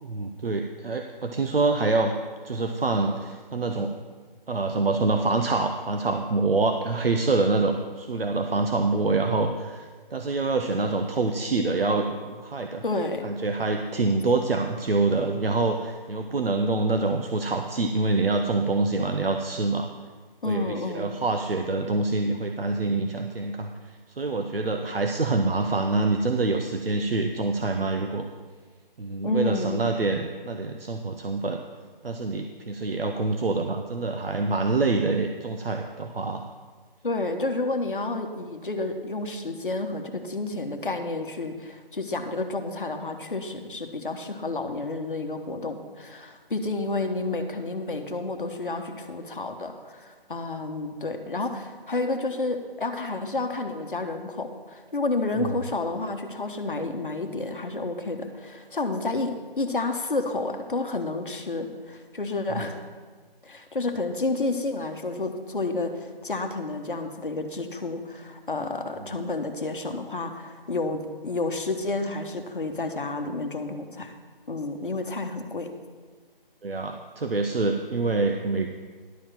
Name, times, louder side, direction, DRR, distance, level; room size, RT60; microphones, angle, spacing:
voice 1, 0.0-2.1 2.4-3.9 4.5-12.8 13.2-19.9 20.4-28.3 29.0-31.6 32.0-36.4 55.4-55.6 62.5-62.6 76.6-78.7, right 3 dB, 75° right, 5 dB, 0.8 m, -26 dB
voice 2, 12.8-13.3 20.4-21.1 29.2-29.8 37.0-62.8 63.4-74.1 74.5-75.7, left 2 dB, 60° left, 6 dB, 1.2 m, -30 dB
11.5 x 4.6 x 7.6 m, 1.5 s
figure-of-eight pair, 155°, 29 cm